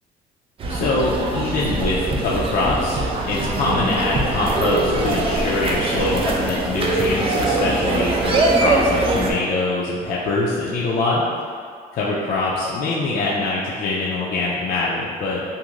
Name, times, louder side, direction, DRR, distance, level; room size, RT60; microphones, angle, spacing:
sound 1, 0.6-9.3, right 2 dB, 35° right, 0.4 m, -22 dB
voice 1, 0.7-11.3 11.9-15.4, left 2 dB, 55° left, -6 dB, 0.4 m, -23 dB
2.6 x 2.4 x 3.0 m, 2.1 s
cardioid pair, 110°, 17 cm